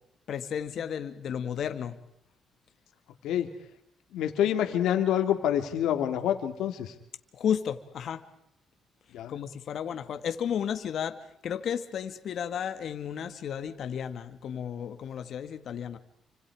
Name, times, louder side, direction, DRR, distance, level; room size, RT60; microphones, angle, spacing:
voice 1, 0.3-2.0 7.3-8.2 9.3-11.2 11.4-16.0, left 8 dB, 65° left, 9 dB, 2.2 m, -33 dB
voice 2, 4.1-6.9 9.1-9.4, left 10 dB, 85° left, 6 dB, 2.8 m, -27 dB
30.0 x 26.0 x 5.0 m, 0.78 s
cardioid pair, 90°, 0 cm